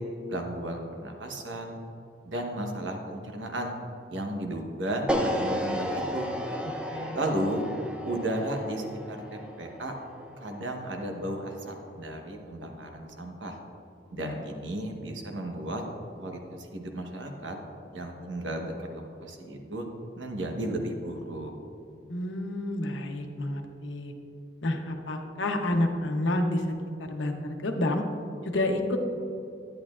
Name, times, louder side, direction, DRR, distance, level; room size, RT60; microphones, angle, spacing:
voice 1, 0.3-1.8 2.2-3.8 4.1-6.3 7.1-7.6 8.0-9.9 10.4-13.6 14.1-15.8 16.2-17.6 17.9-19.9 20.2-21.5, right 1 dB, 90° right, 2 dB, 1.2 m, -34 dB
sound 1, 5.1-11.2, equal, 5° right, 0.5 m, -33 dB
voice 2, 6.6-7.2 14.1-14.4 22.1-24.1 24.6-26.7 27.1-28.0 28.4-29.0, left 1 dB, 90° left, 4 dB, 0.9 m, -29 dB
10.5 x 10.5 x 2.5 m, 2.7 s
head